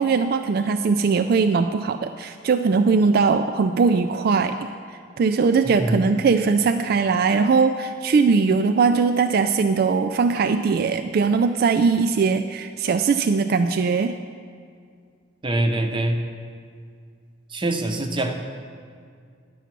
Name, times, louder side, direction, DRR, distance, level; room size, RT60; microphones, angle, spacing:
voice 1, 0.0-4.6 5.2-14.2, right 5 dB, 50° right, 8 dB, 0.3 m, -20 dB
voice 2, 5.6-6.0 15.4-16.2 17.5-18.3, right 1 dB, 25° right, 5 dB, 0.7 m, -24 dB
11.0 x 7.0 x 5.9 m, 2.2 s
head